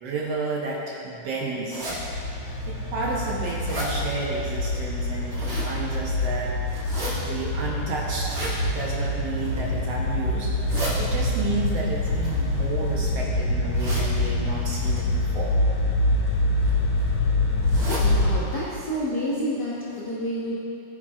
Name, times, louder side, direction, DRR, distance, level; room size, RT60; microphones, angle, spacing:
voice 1, 0.0-1.9 2.7-6.5 7.2-15.5, right 3 dB, 70° right, -3 dB, 1.6 m, -31 dB
sound 1, 1.7-2.0 2.6-2.7 3.1-3.9 5.0-5.7 6.7-7.1 8.1-8.5 9.3-9.7 10.4-10.9 12.0-13.0 13.7-14.1 14.8-15.0 16.0-16.3 16.6-16.7 17.0-17.1 17.6-18.1 18.5-18.6 18.9-19.0 19.5-19.6 19.9-20.0, right 1 dB, 35° right, 1.6 m, -34 dB
sound 2, 1.9-18.4, left 2 dB, 70° left, 2.7 m, -25 dB
voice 2, 17.9-20.6, equal, 90° left, -7 dB, 0.9 m, -29 dB
15.5 x 7.3 x 2.4 m, 2.6 s
omnidirectional pair, 3.6 m